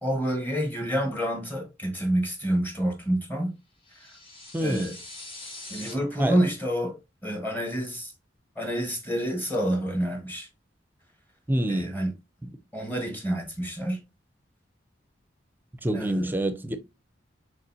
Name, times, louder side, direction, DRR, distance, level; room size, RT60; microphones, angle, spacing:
voice 1, 0.0-3.5 4.6-5.0 5.7-6.9 7.2-8.1 8.6-10.5 11.7-12.1 12.7-14.0 15.9-16.3, equal, 10° left, 1.3 m, -28 dB
sound 1, 3.8-5.9, left 2 dB, 30° left, 1.3 m, -43 dB
voice 2, 4.5-4.9 6.2-6.4 11.5-11.9 15.8-16.8, right 1 dB, 10° right, 0.5 m, -26 dB
5.3 x 3.6 x 2.7 m
head